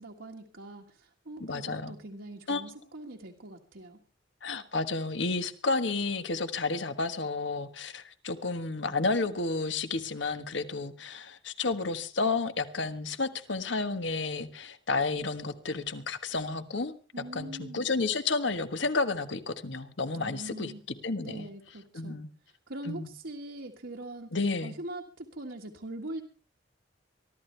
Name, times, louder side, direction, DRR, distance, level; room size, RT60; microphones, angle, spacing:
voice 1, 0.0-4.0 17.1-17.9 20.1-20.8 21.2-22.2 22.7-24.3 24.6-26.2, right 1 dB, 75° right, 0 dB, 1.7 m, -42 dB
voice 2, 1.4-1.9 2.5-2.6 4.4-20.7 21.0-21.5 21.9-22.3 22.8-23.1 24.3-24.7, left 3 dB, 70° left, 10 dB, 1.4 m, -31 dB
23.5 x 13.5 x 3.4 m, 0.35 s
head